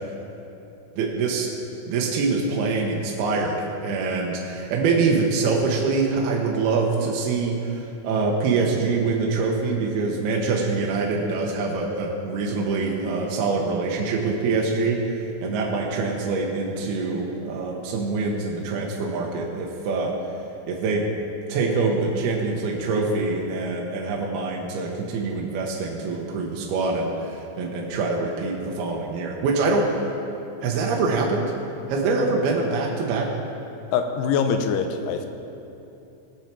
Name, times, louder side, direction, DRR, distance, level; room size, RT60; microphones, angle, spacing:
voice 1, 0.9-1.5 1.9-3.6 3.8-20.1 20.7-21.0 21.5-29.9 30.6-31.5 31.9-33.3, right 4 dB, 75° right, -1 dB, 2.7 m, -24 dB
voice 2, 33.9-35.3, left 6 dB, 85° left, 7 dB, 2.6 m, -23 dB
19.5 x 7.3 x 4.5 m, 2.9 s
omnidirectional pair, 5.0 m